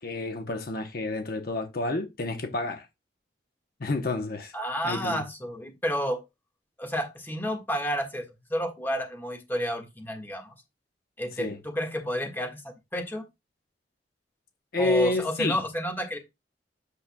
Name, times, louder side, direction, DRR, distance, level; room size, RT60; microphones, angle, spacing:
voice 1, 0.0-2.9 3.8-4.5 4.8-5.2 11.3-11.6 14.7-15.6, left 2 dB, 60° left, 0.9 m, -29 dB
voice 2, 4.5-6.2 6.8-8.2 8.5-10.5 11.2-12.6 12.9-13.2 14.8-16.2, equal, 10° left, 1.6 m, -30 dB
8.4 x 6.6 x 2.2 m
head